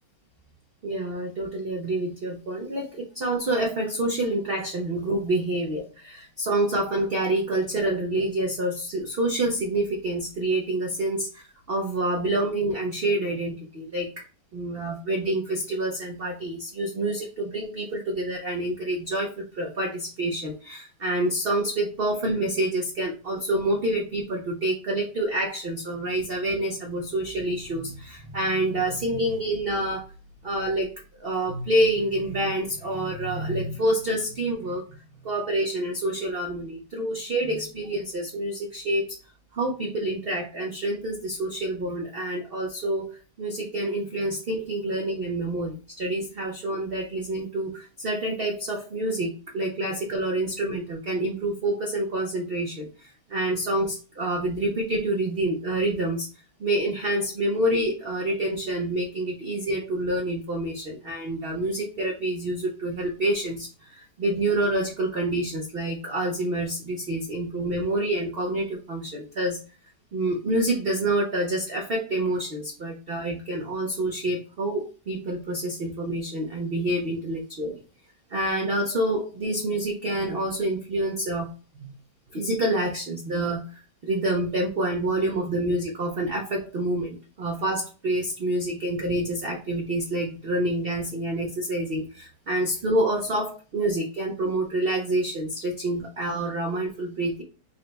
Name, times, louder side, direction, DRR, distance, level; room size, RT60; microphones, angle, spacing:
voice 1, 0.8-14.3 14.5-30.0 30.4-30.9 31.2-34.8 35.2-39.2 39.5-43.1 43.4-56.3 56.6-69.6 70.1-77.7 78.3-81.5 81.8-81.9 82.3-97.4, right 1 dB, 70° right, 0 dB, 0.5 m, -27 dB
4.0 x 2.2 x 3.9 m, 0.36 s
omnidirectional pair, 1.8 m